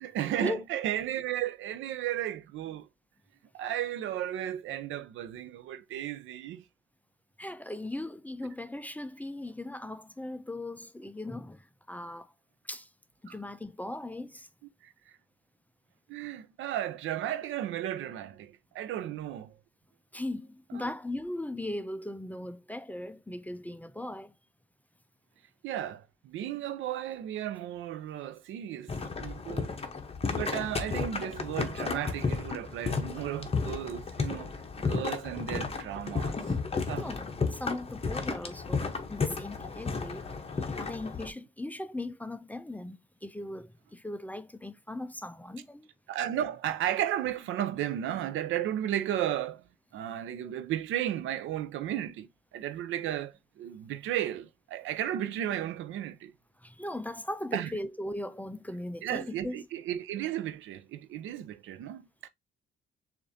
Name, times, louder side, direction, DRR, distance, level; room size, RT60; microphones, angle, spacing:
voice 1, 0.0-2.9 3.5-6.6 13.3-13.4 14.8-15.1 16.1-19.6 20.7-20.9 25.6-28.9 29.2-29.7 30.3-34.5 34.8-36.4 36.9-37.1 46.1-49.6 49.9-56.3 57.5-57.7 59.0-62.3, right 11 dB, 80° right, 0.5 m, -34 dB
voice 2, 7.4-12.3 12.7-12.9 13.2-14.5 20.1-24.3 37.0-40.2 40.7-45.9 56.6-59.6, left 1 dB, 10° left, 0.4 m, -38 dB
sound 1, 28.9-41.3, left 4 dB, 30° left, 0.9 m, -33 dB
6.6 x 2.5 x 2.6 m
cardioid pair, 90°, 20 cm